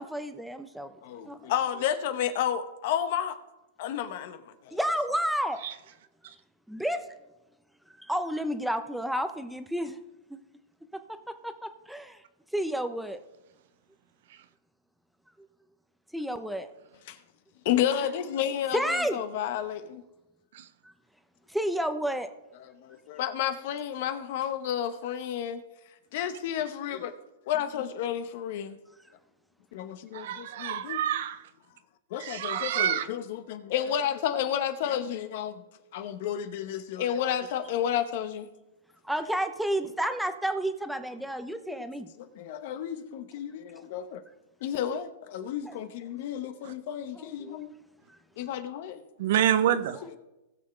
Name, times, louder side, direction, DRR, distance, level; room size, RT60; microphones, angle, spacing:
voice 1, 0.0-1.0 1.2-1.4 4.7-5.6 6.7-7.0 8.0-10.0 10.3-10.4 11.4-12.2 12.5-13.2 16.1-16.7 18.7-19.2 21.5-22.3 39.0-42.1 45.6-45.7 47.2-47.6, equal, ahead, 0.8 m, -30 dB
voice 2, 1.0-3.4 3.8-4.8 17.1-17.2 17.6-20.0 22.6-25.6 26.1-27.1 27.5-28.8 29.7-31.0 32.1-35.6 35.9-38.5 41.7-41.8 42.2-44.2 44.6-47.7 48.4-49.0 49.7-50.2, left 10 dB, 55° left, 1.1 m, -31 dB
voice 3, 30.1-31.4 32.2-33.1 46.6-46.7 49.2-50.2, right 10 dB, 65° right, 0.8 m, -27 dB
19.0 x 6.7 x 3.3 m
hypercardioid pair, 135°, 0 cm